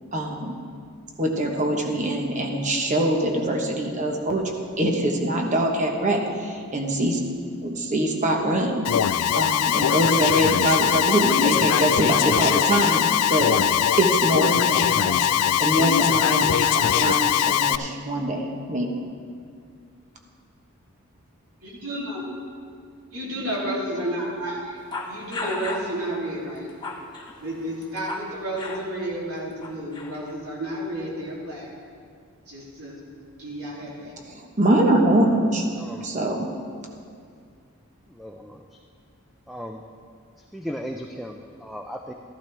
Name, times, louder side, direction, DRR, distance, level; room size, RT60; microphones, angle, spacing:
voice 1, 0.1-0.5 1.2-4.4 4.8-7.2 7.6-8.9 9.3-13.6 14.0-15.2 15.6-18.9 34.3-35.6 35.9-36.5, right 1 dB, 35° right, 2 dB, 1.1 m, -23 dB
Alarm, 8.9-17.8, left 10 dB, 80° left, 0.3 m, -21 dB
voice 2, 21.6-22.2 23.1-24.8 25.0-26.7 27.4-31.7 32.5-33.0 33.4-34.1, right 1 dB, 80° right, -5 dB, 2.9 m, -31 dB
sound 1, 24.9-25.9 26.6-28.3 28.6-28.8 29.6-30.4, left 2 dB, 20° left, 0.8 m, -34 dB
voice 3, 35.7-36.1 38.1-38.7 39.5-39.8 40.5-42.1, equal, ahead, 2 dB, 0.3 m, -36 dB
13.5 x 12.0 x 3.4 m, 2.2 s
head